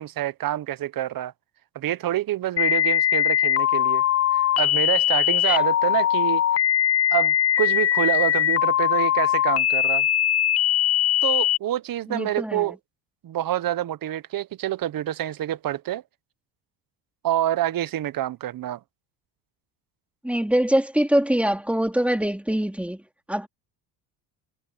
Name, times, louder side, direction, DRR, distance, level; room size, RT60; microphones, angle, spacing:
voice 1, 0.0-1.3 1.7-4.0 4.6-6.4 7.1-10.1 11.2-12.8 13.2-16.0 17.2-18.8, right 13 dB, 50° right, 1.0 m, -27 dB
sound 1, 2.6-11.6, left 11 dB, 35° left, 0.6 m, -21 dB
voice 2, 12.1-12.7 20.2-23.0 23.3-23.5, right 1 dB, 5° right, 3.8 m, -23 dB
supercardioid pair, 85°, 45 cm